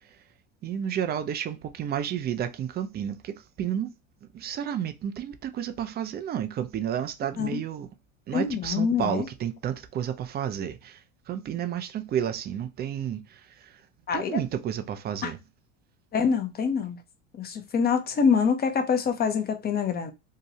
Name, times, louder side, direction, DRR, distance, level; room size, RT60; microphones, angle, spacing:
voice 1, 0.6-3.9 4.3-7.9 8.3-11.0 11.3-13.7 14.1-15.4, right 9 dB, 25° right, 0.4 m, -31 dB
voice 2, 8.3-9.2 14.1-14.4 15.2-15.3 16.1-17.0 17.4-20.1, left 6 dB, 25° left, 0.6 m, -25 dB
2.8 x 2.2 x 2.8 m
hypercardioid pair, 95°, 37 cm